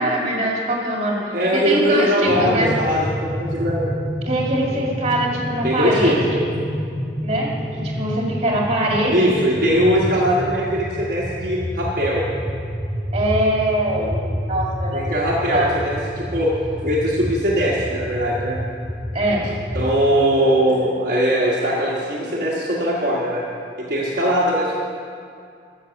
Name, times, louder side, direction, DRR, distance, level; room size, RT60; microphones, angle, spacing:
voice 1, 0.0-2.7 4.3-6.4 7.2-9.4 13.1-14.2 14.4-15.7 19.1-19.5, right 1 dB, 35° right, -2 dB, 2.3 m, -22 dB
voice 2, 1.3-3.9 5.6-6.2 9.1-12.2 14.9-16.5 16.8-18.6 19.7-23.4 23.8-24.8, equal, 50° right, -7 dB, 1.5 m, -20 dB
sound 1, 2.3-19.9, equal, 15° right, 3.0 m, -29 dB
12.5 x 7.1 x 6.9 m, 2.4 s
head